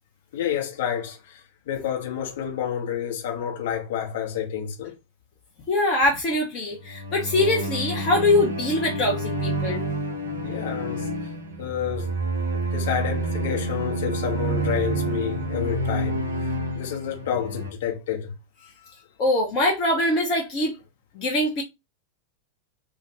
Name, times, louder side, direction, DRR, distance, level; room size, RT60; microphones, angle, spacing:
voice 1, 0.3-1.4 1.7-4.9 10.4-11.1 11.6-12.1 12.7-16.2 16.7-18.3, left 9 dB, 55° left, 0.9 m, -29 dB
voice 2, 5.7-9.8 19.2-20.7 21.1-21.6, left 2 dB, 35° left, 0.7 m, -23 dB
sound 1, 6.7-17.7, right 2 dB, 80° right, 0.6 m, -28 dB
2.6 x 2.1 x 2.8 m
figure-of-eight pair, 90°, 0 cm